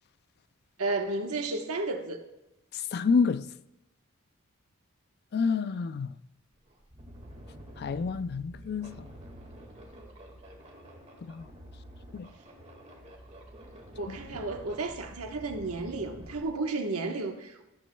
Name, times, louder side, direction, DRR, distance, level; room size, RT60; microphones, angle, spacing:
voice 1, 0.8-2.2 14.0-17.7, right 3 dB, 90° right, 1.2 m, -32 dB
voice 2, 2.9-3.4 5.3-6.1 7.8-8.9 11.3-11.4 12.1-12.3 14.1-14.2, left 5 dB, 50° left, 0.4 m, -28 dB
sound 1, 6.5-16.4, equal, 30° right, 1.9 m, -48 dB
14.0 x 13.5 x 2.2 m
head